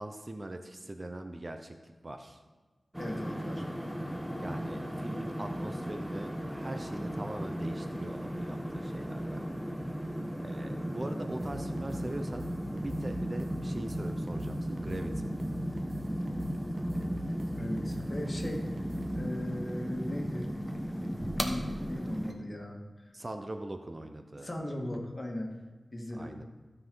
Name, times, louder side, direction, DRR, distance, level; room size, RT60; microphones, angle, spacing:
voice 1, 0.0-2.4 4.3-9.4 10.4-12.5 12.8-15.3 23.1-24.5 26.1-26.4, right 1 dB, 35° right, 6 dB, 0.7 m, -41 dB
sound 1, 2.9-22.3, equal, 5° right, 1.2 m, -36 dB
voice 2, 3.0-3.6 17.6-18.6 19.1-20.5 21.0-23.1 24.4-25.5 25.9-26.4, left 1 dB, 35° left, -1 dB, 2.0 m, -38 dB
sound 2, 11.4-19.3, equal, 60° right, 1.2 m, -44 dB
15.5 x 5.5 x 3.9 m, 1.3 s
wide cardioid pair, 60°, 0 cm